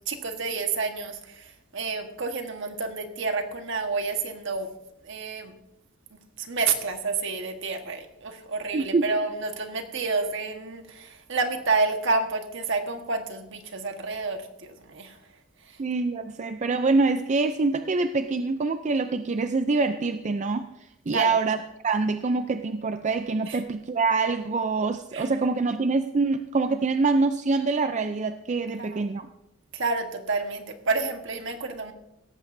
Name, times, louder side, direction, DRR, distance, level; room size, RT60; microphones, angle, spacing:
voice 1, 0.1-4.7 5.0-5.5 6.1-15.2 15.6-15.8 21.1-21.5 23.5-23.6 25.1-25.3 28.7-29.0 29.7-31.9, right 4 dB, 65° right, 5 dB, 1.4 m, -29 dB
voice 2, 8.7-9.1 15.8-20.7 21.1-21.6 21.8-29.3, right 3 dB, 35° right, 9 dB, 0.4 m, -25 dB
17.0 x 14.0 x 2.7 m, 0.91 s
head